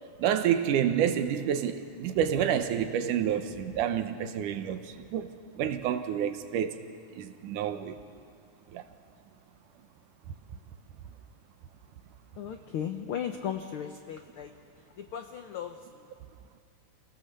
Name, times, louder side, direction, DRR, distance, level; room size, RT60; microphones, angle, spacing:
voice 1, 0.2-6.8 7.1-8.0 8.7-8.8, right 9 dB, 85° right, 2.6 m, -29 dB
voice 2, 12.4-14.5 15.0-15.8, left 9 dB, 85° left, 1.2 m, -36 dB
28.0 x 18.5 x 6.7 m
omnidirectional pair, 3.6 m